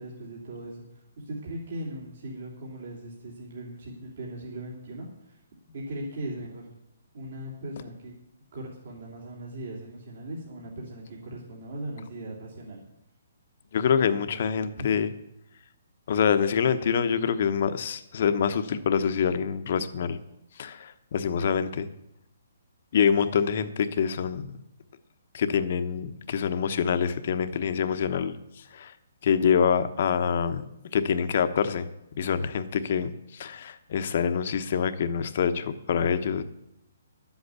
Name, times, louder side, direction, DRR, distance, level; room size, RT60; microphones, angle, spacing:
voice 1, 0.0-5.4 5.7-6.7 7.1-8.1 8.5-12.9 14.8-14.9, right 1 dB, 55° right, -3 dB, 3.1 m, -39 dB
voice 2, 13.7-15.1 16.1-20.2 20.6-21.9 22.9-24.5 25.3-28.3 28.7-28.9 29.2-30.6 30.9-31.9 32.2-36.4, left 7 dB, 45° left, 10 dB, 1.0 m, -25 dB
11.5 x 8.1 x 8.3 m, 0.85 s
hypercardioid pair, 165°, 0 cm